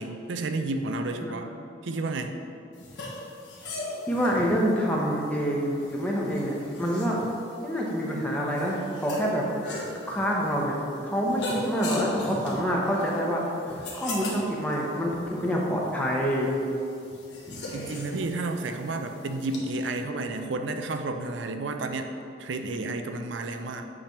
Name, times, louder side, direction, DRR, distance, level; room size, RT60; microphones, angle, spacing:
voice 1, 0.0-1.5 1.8-2.4 17.7-22.1 22.4-23.9, right 2 dB, 80° right, 6 dB, 0.5 m, -31 dB
sound 1, 2.8-19.6, left 2 dB, 70° left, 1.4 m, -39 dB
voice 2, 4.1-7.2 7.6-16.5 17.5-17.6 20.1-20.2, equal, 10° left, -3 dB, 1.0 m, -27 dB
8.7 x 3.4 x 5.8 m, 2.6 s
head